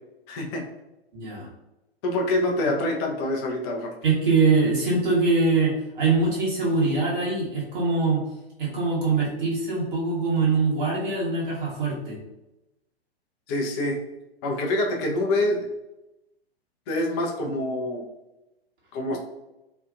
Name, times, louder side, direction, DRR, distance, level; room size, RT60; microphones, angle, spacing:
voice 1, 0.3-0.6 2.0-3.9 13.5-14.0 14.4-15.7 16.9-18.0 18.9-19.2, left 1 dB, 25° left, 1 dB, 0.4 m, -26 dB
voice 2, 1.1-1.5 4.0-8.2 8.6-12.2, right 3 dB, 55° right, -5 dB, 1.1 m, -23 dB
2.7 x 2.4 x 2.4 m, 0.94 s
figure-of-eight pair, 110°, 31 cm